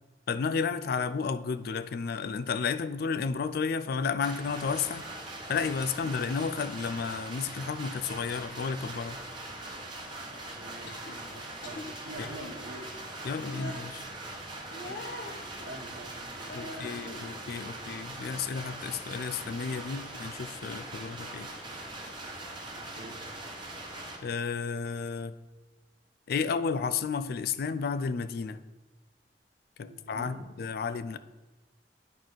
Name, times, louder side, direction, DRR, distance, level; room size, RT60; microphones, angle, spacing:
voice 1, 0.3-5.1 5.5-9.2 13.2-14.0 16.5-21.5 24.2-25.4 26.3-28.6 29.8-31.2, left 5 dB, 60° left, 13 dB, 0.4 m, -32 dB
sound 1, 4.2-24.2, right 2 dB, 30° right, 1.3 m, -41 dB
voice 2, 10.3-12.9 14.7-15.2 15.6-17.9 22.7-23.2 29.8-30.4, right 1 dB, 85° right, 3 dB, 1.1 m, -47 dB
sound 2, 10.8-11.2 11.6-11.9 12.2-12.5 13.4-13.8 14.7-15.4 16.5-17.1 17.5-18.4 18.7-18.9 19.4-20.2 21.4-21.6, left 1 dB, 85° left, 1.0 m, -44 dB
10.5 x 4.8 x 3.9 m, 1.1 s
head